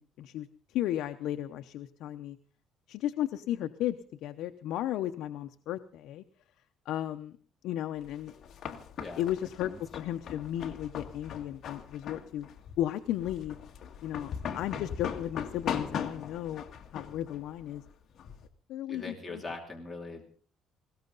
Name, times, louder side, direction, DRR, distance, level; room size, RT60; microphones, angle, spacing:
voice 1, 0.0-2.4 2.9-6.2 6.9-7.4 7.6-8.3 9.2-12.5 12.8-13.6 14.0-16.6 16.9-17.8 18.7-19.4, left 12 dB, 75° left, 8 dB, 0.7 m, -34 dB
sound 1, 8.0-18.5, left 7 dB, 45° left, 1.7 m, -40 dB
voice 2, 14.5-14.8 18.9-20.3, left 3 dB, 5° left, -1 dB, 2.8 m, -42 dB
20.0 x 17.5 x 4.0 m, 0.43 s
cardioid pair, 160°, 0 cm